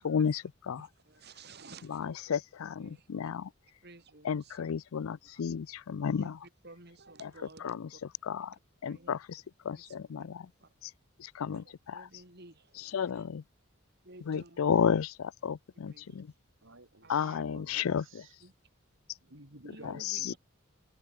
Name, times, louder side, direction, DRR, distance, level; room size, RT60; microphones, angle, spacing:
voice 1, 0.0-0.9 1.9-3.5 4.2-6.4 7.6-7.8 8.3-8.5 8.8-9.2 9.6-10.5 11.2-11.6 12.9-13.4 14.3-16.3 17.1-18.0 20.3-20.4, left 7 dB, 85° left, 0.4 m, -32 dB
voice 2, 0.7-2.4 2.8-3.3 3.8-4.6 6.2-8.0 8.4-8.5 8.8-9.2 9.8-10.3 10.6-10.7 11.4-13.3 14.0-14.8 15.9-16.4 17.0-17.4 18.4-18.5 19.7-20.4, right 3 dB, 50° right, 5.8 m, -54 dB
voice 3, 16.6-18.4 19.2-20.4, right 2 dB, 65° right, 4.5 m, -53 dB
head